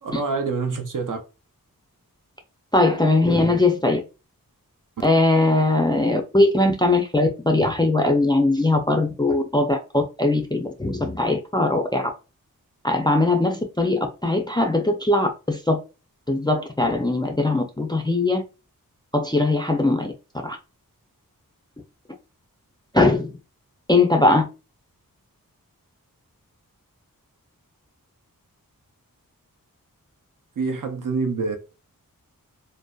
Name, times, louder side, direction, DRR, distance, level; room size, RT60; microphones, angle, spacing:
voice 1, 0.0-1.2 30.6-31.6, right 4 dB, 60° right, 0.5 m, -26 dB
voice 2, 2.7-4.0 5.0-12.1 12.8-15.8 16.3-18.4 19.1-20.1 20.4-20.6 22.9-23.4 23.9-24.4, left 2 dB, 15° left, 0.3 m, -20 dB
2.6 x 2.1 x 2.2 m
wide cardioid pair, 50°, 35 cm